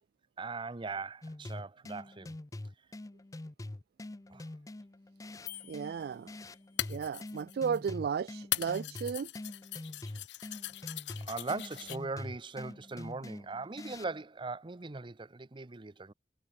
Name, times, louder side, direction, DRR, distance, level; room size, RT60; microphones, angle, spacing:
voice 1, 0.4-2.3 4.3-4.4 11.2-16.1, right 3 dB, 30° right, 0.7 m, -40 dB
sound 1, 1.2-14.2, left 1 dB, 20° left, 0.5 m, -45 dB
sound 2, 5.5-5.6 6.5-7.9 8.5-12.0, left 14 dB, 85° left, 0.8 m, -39 dB
sound 3, 5.5-7.0, left 14 dB, 55° left, 5.9 m, -50 dB
voice 2, 5.7-6.3 6.9-9.3, right 7 dB, 60° right, 0.3 m, -34 dB
head